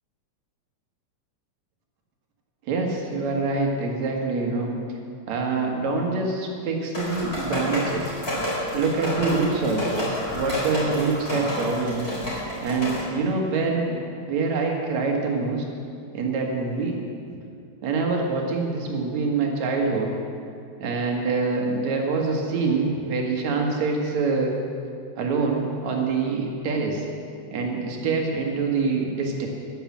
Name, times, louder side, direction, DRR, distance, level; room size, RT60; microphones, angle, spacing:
voice 1, 2.6-4.7 5.3-8.2 8.7-12.1 12.6-14.0 14.3-15.6 16.1-17.0 17.3-17.4 17.8-20.1 20.8-24.5 25.2-27.1 27.5-29.5, right 4 dB, 70° right, 1 dB, 2.9 m, -25 dB
sound 1, 6.9-13.0, equal, 20° left, 4.3 m, -29 dB
10.5 x 10.5 x 7.3 m, 2.4 s
omnidirectional pair, 3.3 m